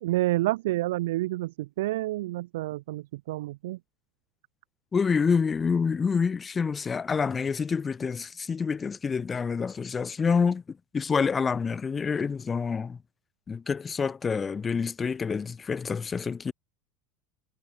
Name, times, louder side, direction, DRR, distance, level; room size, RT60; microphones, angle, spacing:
voice 1, 0.0-3.8, right 17 dB, 85° right, 0.5 m, -29 dB
voice 2, 4.9-13.0 13.5-16.5, left 5 dB, 15° left, 0.8 m, -27 dB
supercardioid pair, 175°, 0 cm